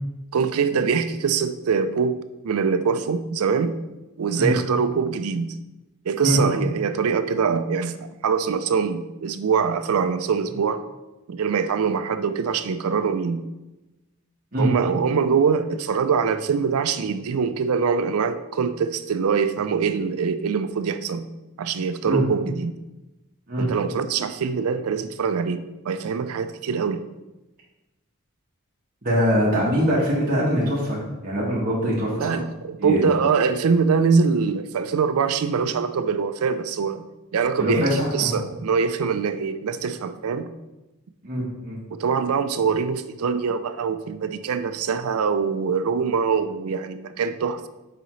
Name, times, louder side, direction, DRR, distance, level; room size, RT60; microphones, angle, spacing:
voice 1, 0.3-2.2 2.4-3.8 4.2-5.5 6.1-10.8 11.3-13.4 14.6-21.3 21.6-22.8 23.6-27.0 32.2-37.0 37.3-40.5 41.9-47.7, right 5 dB, 80° right, 11 dB, 0.4 m, -23 dB
voice 2, 29.0-32.4 32.8-33.0 37.6-38.4 41.2-41.8, equal, 40° right, -7 dB, 1.3 m, -23 dB
6.7 x 4.9 x 3.1 m, 1.0 s
head